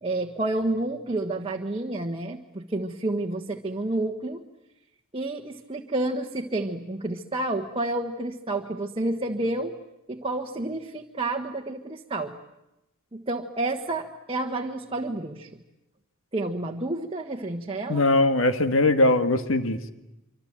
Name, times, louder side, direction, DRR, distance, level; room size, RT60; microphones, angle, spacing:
voice 1, 0.0-4.4 5.1-9.7 10.1-12.3 13.1-15.5 16.3-18.0, right 2 dB, 25° right, 2 dB, 1.4 m, -30 dB
voice 2, 17.9-19.9, left 2 dB, 70° left, 9 dB, 1.8 m, -21 dB
26.0 x 25.5 x 8.8 m, 0.95 s
head